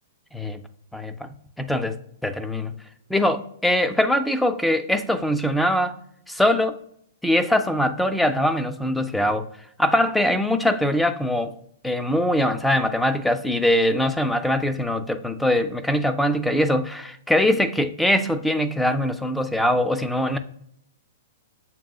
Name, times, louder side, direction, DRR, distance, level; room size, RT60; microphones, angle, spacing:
voice 1, 0.9-1.3 1.6-2.0 2.2-2.7 3.1-6.0 6.3-6.8 7.2-9.5 9.8-11.5 11.8-20.4, left 1 dB, 5° left, 0.3 m, -22 dB
7.0 x 2.4 x 2.2 m
hypercardioid pair, 120°, 0 cm